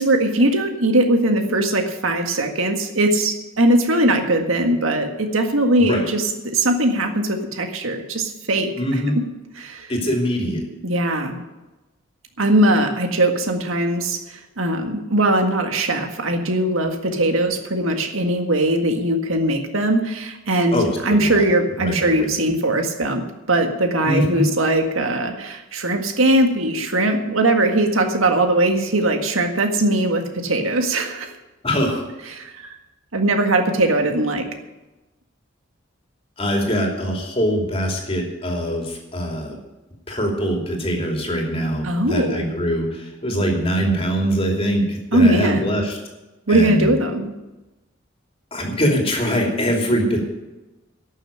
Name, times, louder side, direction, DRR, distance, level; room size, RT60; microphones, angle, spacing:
voice 1, 0.0-9.2 9.6-9.9 10.8-11.4 12.4-31.3 32.3-32.8 33.1-34.5 41.8-42.5 45.1-45.7 46.5-47.3, right 1 dB, 85° right, 5 dB, 1.8 m, -20 dB
voice 2, 8.8-9.2 9.9-10.6 20.7-21.5 21.8-22.5 24.0-24.4 31.6-32.0 36.4-39.6 40.1-46.0 46.5-46.9 48.5-50.2, equal, 30° left, 1 dB, 2.9 m, -23 dB
12.0 x 7.1 x 10.0 m, 1.0 s
head